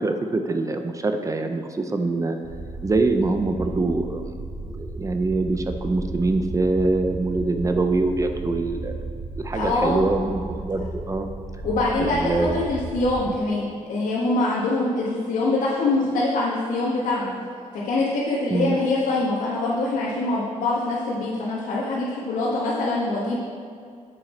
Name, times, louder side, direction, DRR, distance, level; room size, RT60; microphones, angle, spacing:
voice 1, 0.0-2.4 2.8-4.2 4.6-9.0 9.4-11.3 12.0-12.6 13.3-13.4 18.5-18.8, right 2 dB, 25° right, 6 dB, 0.6 m, -24 dB
sound 1, 2.4-13.2, right 2 dB, 40° right, 1.6 m, -34 dB
voice 2, 9.5-10.0 11.6-17.3 17.8-23.4, left 2 dB, 85° left, -7 dB, 1.6 m, -24 dB
9.0 x 7.9 x 4.5 m, 2.3 s
wide cardioid pair, 135°, 13 cm